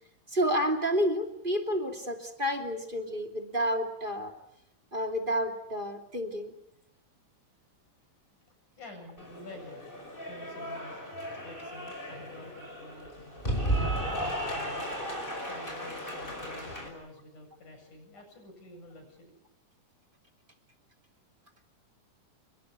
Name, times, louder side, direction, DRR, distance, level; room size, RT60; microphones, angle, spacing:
voice 1, 0.3-4.3 4.9-6.5, equal, 15° right, 4 dB, 2.7 m, -30 dB
voice 2, 8.8-9.9 10.3-11.0 11.4-15.0 15.5-19.4, left 2 dB, 65° left, 4 dB, 9.3 m, -49 dB
Cheering / Applause, 9.2-16.9, right 1 dB, 15° left, 5.5 m, -35 dB
29.5 x 22.0 x 8.4 m, 0.74 s
omnidirectional pair, 3.7 m